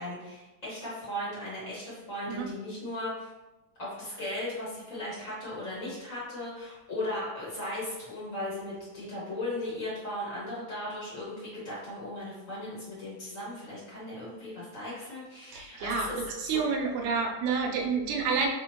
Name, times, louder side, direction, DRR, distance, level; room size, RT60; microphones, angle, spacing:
voice 1, 0.0-3.3 3.8-16.2 16.5-16.6, left 1 dB, 35° left, -7 dB, 1.5 m, -37 dB
voice 2, 15.5-16.1 16.4-18.5, right 5 dB, 75° right, 2 dB, 1.8 m, -29 dB
4.3 x 4.2 x 2.9 m, 1.1 s
omnidirectional pair, 3.6 m